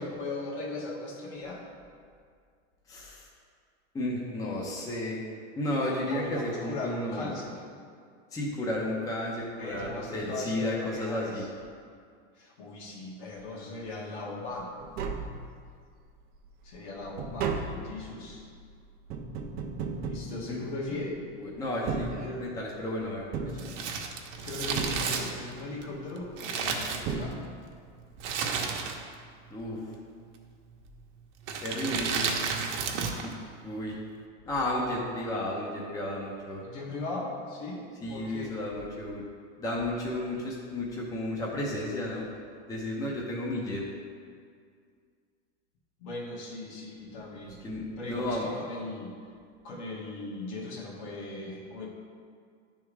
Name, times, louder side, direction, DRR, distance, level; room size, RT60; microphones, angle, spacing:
voice 1, 0.0-1.6 6.0-7.6 9.6-11.5 12.4-14.7 16.6-18.5 20.0-21.2 22.1-22.4 24.4-27.5 36.6-38.6 46.0-47.6 48.0-49.1 49.6-51.9, left 2 dB, 65° left, -3 dB, 1.6 m, -38 dB
voice 2, 2.9-3.3 3.9-5.2 5.6-7.4 8.3-11.5 20.5-20.6 21.4-22.1 22.4-23.7 29.5-29.8 31.6-32.3 33.2-33.3 33.6-33.9 34.5-36.6 38.0-39.2 39.6-42.3 42.7-43.8 47.4-48.5, left 1 dB, 10° left, -4 dB, 0.6 m, -33 dB
Tap, 14.5-14.6 14.8-15.9 16.3-21.1 21.7-22.8 23.3-24.3 24.8-25.6 26.6-26.7 27.0-27.9 28.1-28.2, right 4 dB, 30° right, 0.4 m, -36 dB
Crumpling crinkling, 23.5-27.5 28.2-29.2 29.5-29.6 30.4-30.7 31.4-33.3 33.6-33.7, right 5 dB, 65° right, 0.8 m, -32 dB
9.7 x 3.6 x 3.2 m, 2.1 s
supercardioid pair, 135°, 36 cm